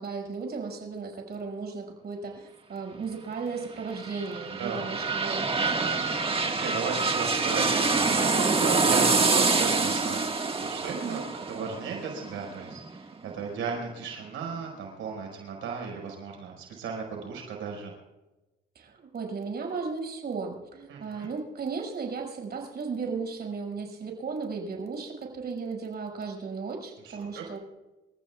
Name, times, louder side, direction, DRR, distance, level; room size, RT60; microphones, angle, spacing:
voice 1, 0.0-6.1 10.9-11.3 18.7-27.6, right 4 dB, 55° right, 1 dB, 6.1 m, -35 dB
sound 1, 3.7-13.4 13.8-13.9, right 4 dB, 30° right, 1.8 m, -26 dB
voice 2, 4.6-4.9 6.4-17.9 20.9-21.3 27.0-27.5, right 5 dB, 80° right, 0 dB, 5.3 m, -35 dB
29.5 x 15.0 x 2.4 m, 1.1 s
cardioid pair, 90°, 20 cm